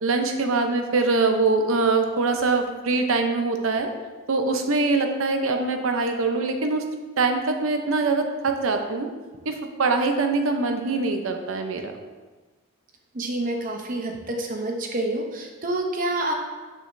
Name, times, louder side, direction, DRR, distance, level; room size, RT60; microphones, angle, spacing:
voice 1, 0.0-3.9 4.3-6.8 7.2-9.1 9.5-11.9, right 3 dB, 85° right, 5 dB, 0.7 m, -23 dB
voice 2, 13.1-16.3, right 1 dB, 40° right, 1 dB, 0.7 m, -28 dB
6.4 x 6.1 x 2.6 m, 1.3 s
head